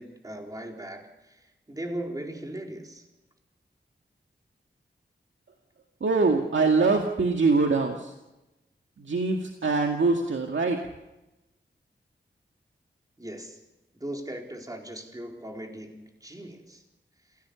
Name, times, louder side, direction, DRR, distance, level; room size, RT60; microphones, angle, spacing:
voice 1, 0.0-3.0 13.2-13.6 13.9-16.8, right 1 dB, 20° right, 1 dB, 4.1 m, -38 dB
voice 2, 6.0-8.1 9.1-10.8, right 3 dB, 80° right, 2 dB, 2.1 m, -23 dB
28.0 x 16.5 x 7.1 m, 1.0 s
wide cardioid pair, 95°, 19 cm